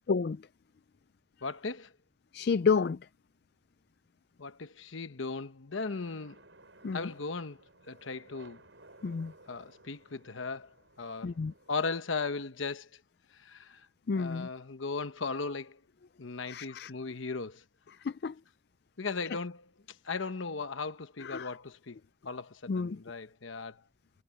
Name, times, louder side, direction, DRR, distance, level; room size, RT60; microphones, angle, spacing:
voice 1, 1.4-1.9 4.4-6.4 6.9-8.6 9.5-11.3 11.7-13.0 13.3-13.9 14.1-15.8 16.2-17.6 19.0-19.7 20.0-22.0 22.2-23.8, left 4 dB, 80° left, 1.0 m, -37 dB
voice 2, 2.3-3.0 6.8-7.0 9.0-9.3 11.2-11.5 14.1-14.5 16.5-16.9 18.0-18.3 21.2-21.5 22.7-23.0, left 5 dB, 55° left, 0.4 m, -30 dB
sound 1, 5.8-12.0, right 2 dB, 70° right, 7.5 m, -58 dB
head